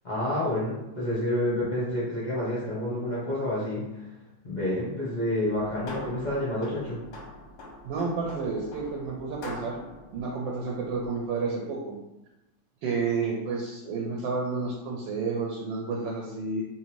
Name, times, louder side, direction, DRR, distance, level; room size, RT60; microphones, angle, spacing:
voice 1, 0.0-4.0 4.4-7.0, left 1 dB, 45° left, -7 dB, 0.6 m, -29 dB
sound 1, 5.5-11.3, left 2 dB, 60° left, 0.9 m, -44 dB
voice 2, 7.8-9.8 10.1-12.0 12.8-16.6, right 4 dB, 75° right, -1 dB, 1.3 m, -30 dB
3.7 x 2.7 x 3.0 m, 0.95 s
omnidirectional pair, 2.1 m